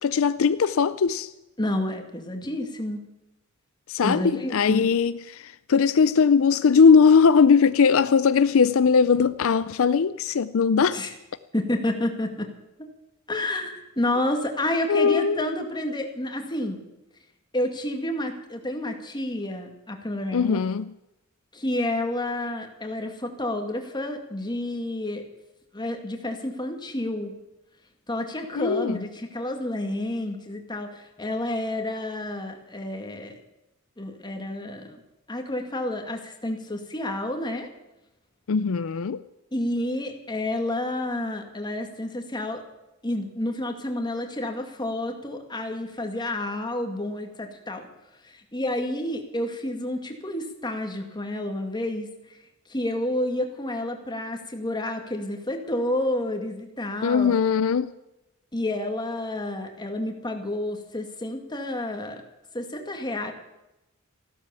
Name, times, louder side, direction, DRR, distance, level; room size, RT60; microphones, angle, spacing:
voice 1, 0.0-1.3 3.9-11.0 14.9-15.4 20.3-20.9 28.5-29.0 38.5-39.2 57.0-57.9, left 5 dB, 70° left, 0.5 m, -20 dB
voice 2, 1.6-3.0 4.0-4.9 10.9-11.1 11.5-12.5 13.3-16.8 17.5-20.6 21.5-25.2 25.7-27.3 28.1-33.4 34.0-35.0 35.3-37.7 39.5-42.6 43.0-47.9 48.2-52.1 52.7-57.3 58.5-62.2 62.5-63.3, left 1 dB, 20° left, 2.2 m, -30 dB
15.0 x 12.5 x 7.1 m
head